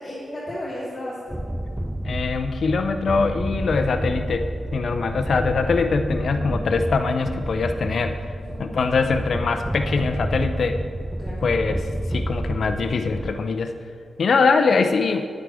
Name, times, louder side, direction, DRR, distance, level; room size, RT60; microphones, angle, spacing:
voice 1, 0.0-1.4 8.4-8.8 11.2-11.5, left 1 dB, 25° left, -11 dB, 2.7 m, -34 dB
sound 1, 1.3-13.3, right 1 dB, 5° right, 0.3 m, -29 dB
voice 2, 2.0-8.3 8.6-10.8 11.4-13.7 14.2-15.3, left 4 dB, 55° left, 7 dB, 0.6 m, -23 dB
9.6 x 9.5 x 4.9 m, 2.3 s
wide cardioid pair, 130°, 0 cm